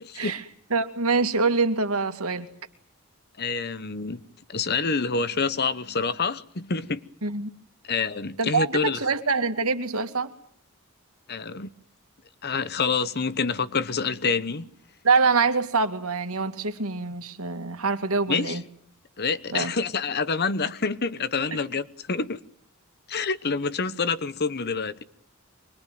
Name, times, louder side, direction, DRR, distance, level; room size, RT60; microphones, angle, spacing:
voice 1, 0.0-0.4 3.4-4.2 4.5-7.0 7.8-9.0 11.3-11.7 12.4-14.7 18.3-18.6 19.2-22.4 23.1-25.0, left 4 dB, 50° left, 1.1 m, -27 dB
voice 2, 0.7-2.5 7.2-7.5 8.4-10.3 15.0-18.6 19.5-19.7 21.5-21.6, right 4 dB, 80° right, 2.4 m, -25 dB
24.5 x 22.0 x 9.4 m
head